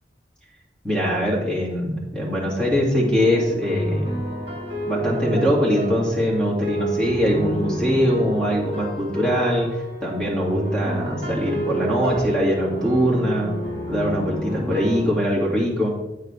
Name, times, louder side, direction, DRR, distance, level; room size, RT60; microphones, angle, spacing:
voice 1, 0.8-4.1 4.8-9.7 10.0-13.5 13.9-15.9, equal, 5° left, -5 dB, 2.1 m, -22 dB
sound 1, 2.9-15.1, right 1 dB, 35° right, 2.7 m, -29 dB
8.8 x 6.7 x 3.4 m, 0.96 s
head